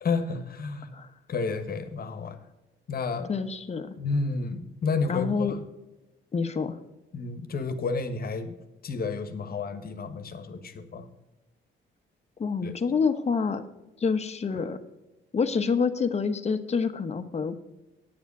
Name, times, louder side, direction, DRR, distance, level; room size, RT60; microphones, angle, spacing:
voice 1, 0.0-0.9 1.3-2.4 2.9-3.3 4.0-5.6 7.1-8.5 8.8-11.1 12.6-12.7, left 4 dB, 50° left, 9 dB, 1.3 m, -31 dB
voice 2, 3.3-3.9 5.1-5.5 6.3-6.8 12.4-13.6 14.0-14.8 15.3-17.6, left 5 dB, 35° left, 8 dB, 1.0 m, -27 dB
9.5 x 7.2 x 5.4 m, 1.0 s
cardioid pair, 90°, 20 cm